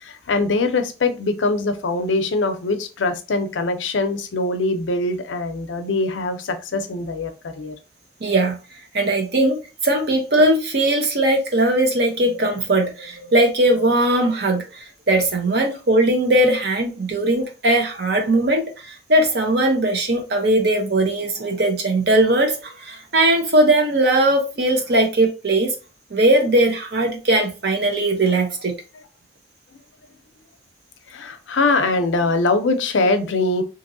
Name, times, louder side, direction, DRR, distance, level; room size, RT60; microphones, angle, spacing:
voice 1, 0.0-7.8 31.1-33.6, left 3 dB, 85° left, 0.5 m, -22 dB
voice 2, 8.2-8.6 8.9-25.7 26.1-28.7, right 1 dB, 55° right, 0.8 m, -19 dB
2.8 x 2.7 x 2.6 m
head